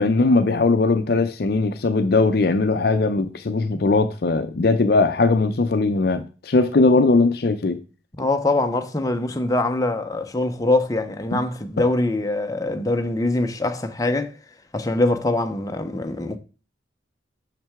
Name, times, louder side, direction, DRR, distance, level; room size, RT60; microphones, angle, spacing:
voice 1, 0.0-7.8 11.3-11.4, left 3 dB, 55° left, 0.5 m, -19 dB
voice 2, 8.2-14.3 14.7-16.4, left 2 dB, 20° left, 0.6 m, -23 dB
6.6 x 5.9 x 3.4 m
head